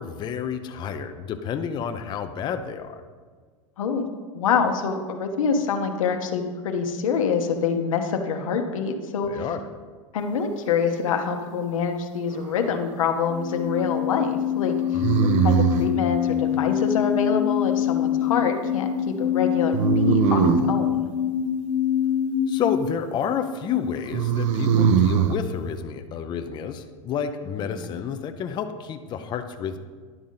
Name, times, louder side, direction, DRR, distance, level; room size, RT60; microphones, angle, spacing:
voice 1, 0.0-3.0 9.3-9.6 14.9-15.3 22.5-29.8, left 7 dB, 25° left, 7 dB, 0.5 m, -30 dB
voice 2, 3.8-4.1 4.3-9.4 10.1-14.8 15.4-21.1 27.6-27.8, left 6 dB, 90° left, 5 dB, 1.0 m, -25 dB
sound 1, 12.3-13.0 15.0-16.0 19.7-20.8 24.1-25.4, right 8 dB, 65° right, 0.5 m, -21 dB
sound 2, 13.2-22.8, left 10 dB, 60° left, 1.0 m, -25 dB
10.5 x 3.7 x 5.6 m, 1.5 s
supercardioid pair, 130°, 17 cm